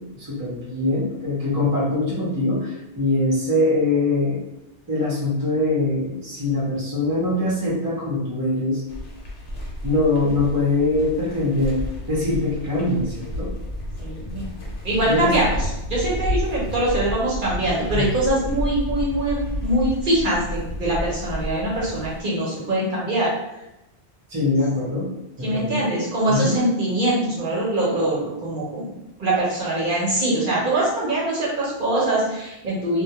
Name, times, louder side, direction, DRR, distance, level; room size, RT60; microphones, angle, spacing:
voice 1, 0.0-4.5 4.9-8.8 9.8-13.5 15.0-15.4 17.9-18.1 24.3-25.1 25.4-25.8 26.3-26.5, left 2 dB, 25° right, -5 dB, 0.5 m, -23 dB
sound 1, 8.9-22.2, left 1 dB, 70° left, 0.9 m, -31 dB
voice 2, 14.0-14.4 14.8-23.3 25.4-33.0, right 1 dB, 55° right, -6 dB, 0.8 m, -23 dB
2.2 x 2.1 x 2.8 m, 0.91 s
omnidirectional pair, 1.1 m